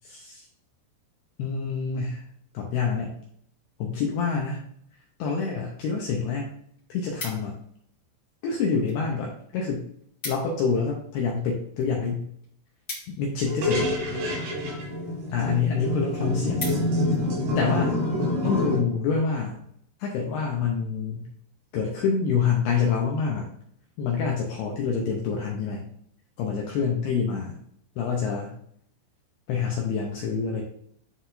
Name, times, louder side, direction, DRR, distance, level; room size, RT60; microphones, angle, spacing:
voice 1, 1.4-2.2 2.5-3.2 3.8-4.6 5.2-6.5 6.9-7.6 8.4-9.9 10.3-12.3 13.1-13.9 15.3-16.6 17.6-17.9 18.4-19.6 20.0-21.3 21.7-23.5 24.0-25.8 26.4-27.6 28.0-28.5 29.5-30.6, left 5 dB, 80° left, 0 dB, 2.3 m, -26 dB
sound 1, 6.6-7.8 8.5-9.0 9.3-9.4 9.7-9.8 10.0-10.6 11.0-13.8 14.6-14.9 15.4-15.5 15.8-15.9 16.2-17.2 17.7-17.9, left 2 dB, 40° left, 1.2 m, -40 dB
sound 2, 13.5-18.8, left 1 dB, 90° right, 5.5 m, -27 dB
11.5 x 4.0 x 2.7 m, 0.68 s
omnidirectional pair, 5.6 m